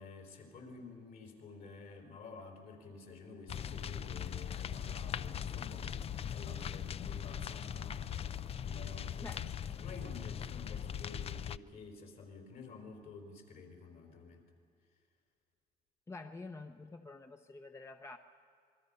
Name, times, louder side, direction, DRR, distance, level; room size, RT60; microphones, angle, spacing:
voice 1, 0.0-6.0 6.3-8.1 8.6-14.5, left 4 dB, 60° left, 2 dB, 4.8 m, -50 dB
sound 1, 3.5-11.6, left 9 dB, 35° left, 0.4 m, -40 dB
voice 2, 16.1-18.2, left 3 dB, 15° left, 6 dB, 0.8 m, -48 dB
27.0 x 21.0 x 5.6 m, 2.3 s
cardioid pair, 110°, 17 cm